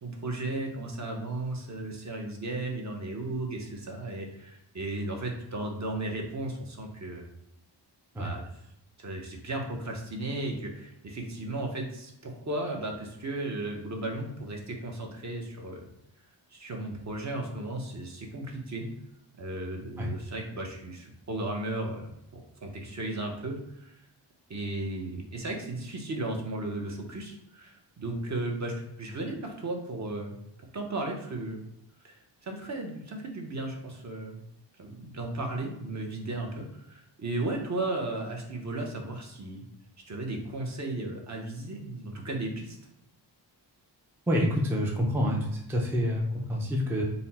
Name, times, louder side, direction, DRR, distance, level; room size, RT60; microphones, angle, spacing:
voice 1, 0.0-7.2 8.1-8.4 9.0-15.9 16.5-18.9 19.4-22.1 22.6-23.9 24.5-30.3 30.7-31.6 32.0-34.4 34.8-39.6 40.1-42.8, right 2 dB, 40° right, 1 dB, 0.7 m, -35 dB
voice 2, 44.3-47.0, equal, 5° right, -1 dB, 0.4 m, -27 dB
4.1 x 2.0 x 4.1 m, 0.82 s
wide cardioid pair, 135°, 43 cm